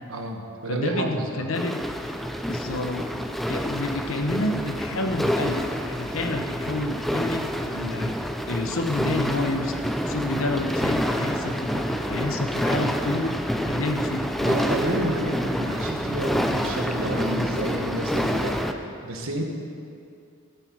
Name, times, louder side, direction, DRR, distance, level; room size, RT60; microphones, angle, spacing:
voice 1, 0.1-1.5 3.5-3.7 14.4-18.6 19.0-19.4, right 1 dB, 85° right, 2 dB, 1.4 m, -30 dB
voice 2, 0.7-1.8 2.5-3.1 3.5-8.1 8.5-9.8 10.1-13.3 13.6-14.3, left 2 dB, 85° left, 5 dB, 0.9 m, -29 dB
sound 1, 1.5-18.7, equal, ahead, 0.4 m, -28 dB
13.0 x 8.1 x 4.6 m, 2.4 s
head